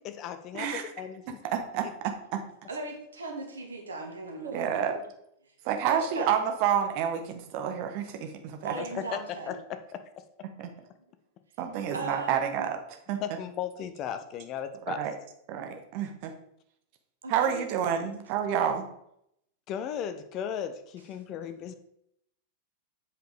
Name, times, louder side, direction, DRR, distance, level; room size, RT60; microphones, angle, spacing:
voice 1, 0.0-1.4 8.8-9.2 9.5-10.0 13.2-15.1 19.7-21.7, left 9 dB, 35° left, 10 dB, 0.7 m, -36 dB
voice 2, 1.5-2.4 4.4-5.0 5.6-8.7 10.6-10.7 11.6-12.8 13.1-13.2 14.9-15.1 15.5-16.3 17.3-18.9, right 8 dB, 45° right, 6 dB, 1.1 m, -29 dB
voice 3, 2.7-5.0 5.8-6.4 8.6-9.6 11.9-12.7 17.2-17.6, right 3 dB, 70° right, 2 dB, 1.7 m, -38 dB
7.7 x 5.0 x 4.9 m, 0.76 s
figure-of-eight pair, 90°, 0 cm